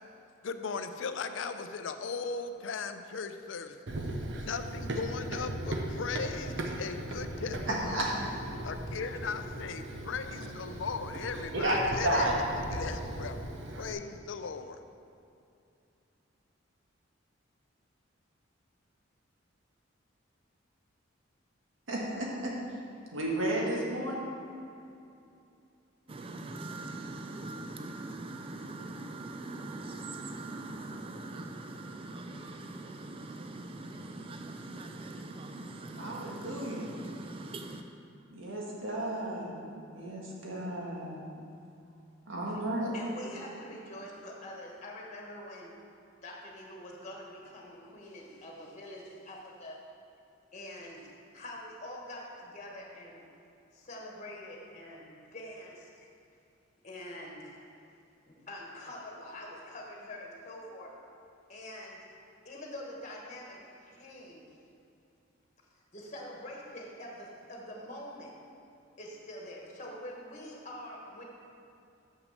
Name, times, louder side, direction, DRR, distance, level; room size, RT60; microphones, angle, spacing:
voice 1, 0.4-3.8 4.4-8.1 8.6-12.3 12.6-13.4 13.8-14.8, left 5 dB, 70° left, 9 dB, 0.5 m, -37 dB
Run, 3.9-13.9, right 1 dB, 65° right, 0.8 m, -38 dB
voice 2, 7.7-8.1 11.5-11.7 12.0-12.4 21.9-22.6 23.1-24.1 36.0-36.8 38.3-41.2 42.3-42.9, right 1 dB, 80° right, -3 dB, 1.7 m, -32 dB
sound 1, 26.1-37.8, right 2 dB, 30° right, 0.4 m, -42 dB
voice 3, 42.9-45.8 46.2-49.8 50.5-53.2 53.7-55.9 56.8-57.7 58.3-60.9 61.5-62.0 62.4-64.5 65.9-68.3 69.0-71.2, left 1 dB, 35° left, -1 dB, 1.3 m, -45 dB
6.5 x 6.0 x 6.5 m, 2.6 s
head